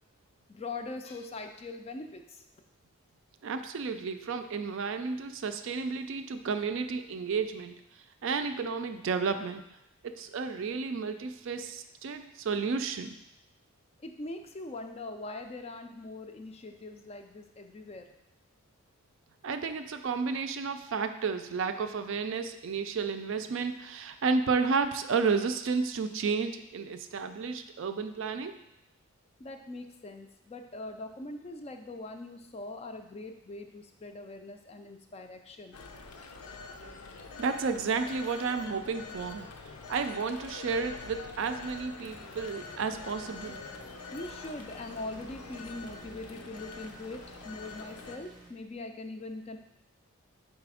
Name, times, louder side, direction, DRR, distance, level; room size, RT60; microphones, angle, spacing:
voice 1, 0.5-2.5 14.0-18.1 29.4-35.8 44.1-49.6, left 2 dB, 25° left, 6 dB, 0.3 m, -42 dB
voice 2, 3.4-7.8 8.2-9.6 10.0-13.1 19.4-28.6 37.4-39.5 39.9-43.6, right 5 dB, 60° right, 8 dB, 0.4 m, -32 dB
Telephone, 35.7-48.2, left 3 dB, 85° left, 0.6 m, -45 dB
sound 1, 42.0-48.5, right 2 dB, ahead, 0.6 m, -54 dB
4.9 x 4.1 x 4.8 m, 0.87 s
head